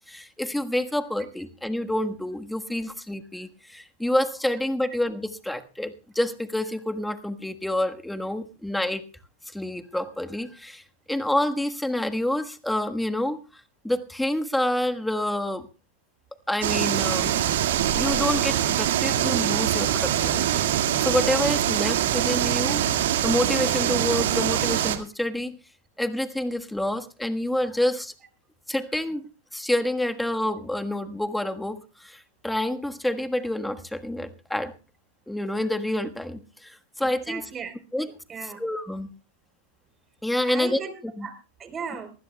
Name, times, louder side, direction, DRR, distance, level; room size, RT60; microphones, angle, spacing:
voice 1, 0.1-9.0 9.5-13.4 13.8-15.7 16.5-17.4 17.9-22.8 23.2-25.6 26.0-28.1 28.7-29.2 29.5-34.7 35.3-37.4 37.9-38.1 38.6-39.1 40.2-40.8 41.2-41.3, left 1 dB, 5° left, 7 dB, 1.4 m, -28 dB
sound 1, 16.6-25.0, right 11 dB, 75° right, 2.0 m, -24 dB
voice 2, 37.0-37.7 38.3-38.6 40.5-41.3 41.6-42.1, right 6 dB, 25° right, 7 dB, 4.0 m, -36 dB
23.5 x 15.5 x 2.3 m, 0.32 s
hypercardioid pair, 120°, 0 cm